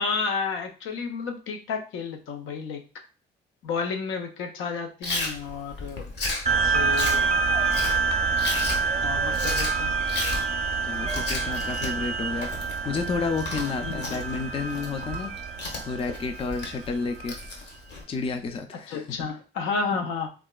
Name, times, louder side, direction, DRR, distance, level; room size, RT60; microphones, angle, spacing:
voice 1, 0.0-2.8 3.6-6.1 6.5-7.3 9.0-9.9 13.8-14.2 18.7-20.3, left 5 dB, 80° left, 5 dB, 0.6 m, -31 dB
Chewing mastication, 5.0-18.0, left 2 dB, 60° left, 0.9 m, -34 dB
sound 1, 6.5-17.3, right 4 dB, 35° right, 0.5 m, -27 dB
voice 2, 10.8-15.3 15.8-17.4 18.1-19.2, left 4 dB, 30° left, 6 dB, 0.3 m, -31 dB
2.8 x 2.3 x 2.2 m, 0.34 s
cardioid pair, 90°, 20 cm